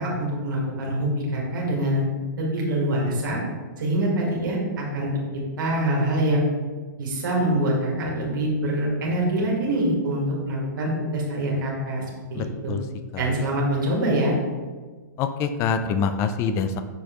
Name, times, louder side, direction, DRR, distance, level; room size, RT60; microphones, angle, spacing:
voice 1, 0.0-2.0 2.4-3.4 3.8-5.1 5.6-6.4 7.0-12.0 12.3-12.8 13.2-14.4, right 1 dB, 75° right, -3 dB, 1.8 m, -24 dB
voice 2, 12.4-12.8 15.2-16.8, left 6 dB, 25° left, 9 dB, 0.4 m, -25 dB
6.3 x 5.0 x 3.0 m, 1.4 s
hypercardioid pair, 140°, 11 cm